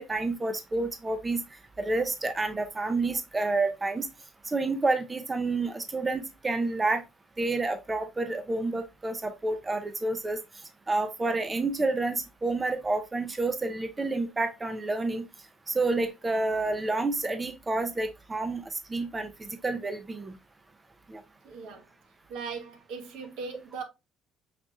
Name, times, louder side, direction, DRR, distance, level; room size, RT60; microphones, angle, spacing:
voice 1, 0.0-1.4 1.8-4.1 4.4-7.0 7.4-10.4 10.9-15.3 15.7-20.4 21.1-21.2, right 2 dB, 25° right, 0.5 m, -29 dB
voice 2, 21.4-21.8 22.3-23.8, right 5 dB, 75° right, 0.9 m, -39 dB
5.8 x 2.9 x 2.2 m
supercardioid pair, 75°, 0 cm